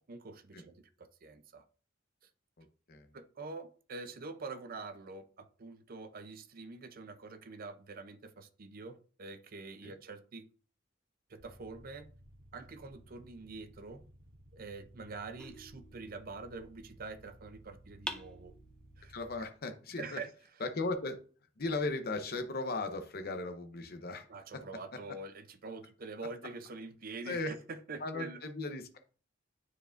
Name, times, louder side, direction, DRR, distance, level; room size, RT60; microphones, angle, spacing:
voice 1, 0.1-1.6 3.1-10.5 11.3-12.1 12.5-14.0 14.5-18.5 19.0-19.1 19.4-19.5 20.0-20.3 24.3-28.4, right 3 dB, 45° right, 0.6 m, -45 dB
voice 2, 2.6-3.1 9.8-9.9 19.1-20.2 20.6-21.2 21.6-24.3 24.5-24.6 27.3-27.5 28.0-29.0, left 3 dB, 50° left, 0.8 m, -37 dB
sound 1, 11.4-19.4, equal, 80° right, 1.4 m, -58 dB
sound 2, 15.4-16.5 18.1-19.1, left 1 dB, 5° left, 0.5 m, -45 dB
9.2 x 4.9 x 2.5 m
head